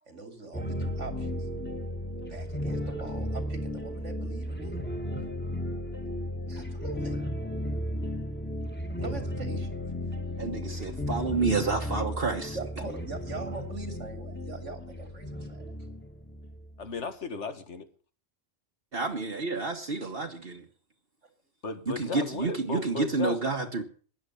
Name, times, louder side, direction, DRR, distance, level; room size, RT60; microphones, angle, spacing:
voice 1, 0.0-1.5 2.3-4.8 5.2-5.3 5.6-6.0 6.5-7.2 9.0-9.7 12.5-15.7 20.0-20.1, right 3 dB, 90° right, 7 dB, 3.3 m, -42 dB
sound 1, 0.5-16.9, equal, 10° left, 1.9 m, -34 dB
voice 2, 10.4-12.6 18.9-20.7 21.9-23.8, right 3 dB, 50° right, 2 dB, 1.5 m, -29 dB
voice 3, 16.8-17.9 21.6-23.4, left 4 dB, 75° left, 10 dB, 1.9 m, -35 dB
16.0 x 10.5 x 6.9 m, 0.43 s
omnidirectional pair, 1.2 m